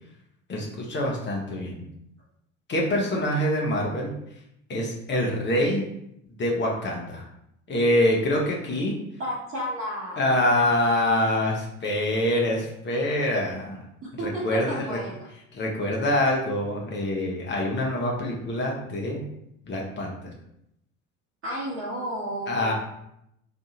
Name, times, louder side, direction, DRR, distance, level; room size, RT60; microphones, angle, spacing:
voice 1, 0.5-1.8 2.7-4.1 4.7-5.8 6.4-7.2 7.7-8.9 10.2-13.8 14.2-15.0 15.5-19.2 19.7-20.1 22.5-22.7, left 1 dB, 30° left, -1 dB, 0.8 m, -25 dB
voice 2, 9.2-10.2 14.0-15.2 21.4-22.7, equal, 30° right, -7 dB, 1.0 m, -32 dB
2.7 x 2.4 x 4.0 m, 0.78 s
figure-of-eight pair, 65°, 40 cm